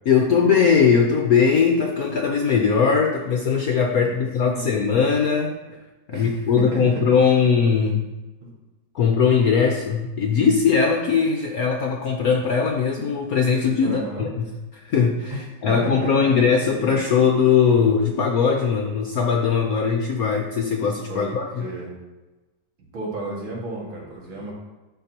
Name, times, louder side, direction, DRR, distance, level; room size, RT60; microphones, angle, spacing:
voice 1, 0.1-5.6 6.1-8.1 8.9-21.6, left 6 dB, 70° left, 2 dB, 0.9 m, -20 dB
voice 2, 3.9-4.7 6.1-7.0 7.4-7.5 8.4-8.5 13.8-14.3 15.3-15.4 15.7-16.3 16.8-17.1 21.1-21.9 22.9-24.5, right 2 dB, 75° right, -4 dB, 2.8 m, -33 dB
11.5 x 5.9 x 2.9 m, 1.1 s
omnidirectional pair, 2.2 m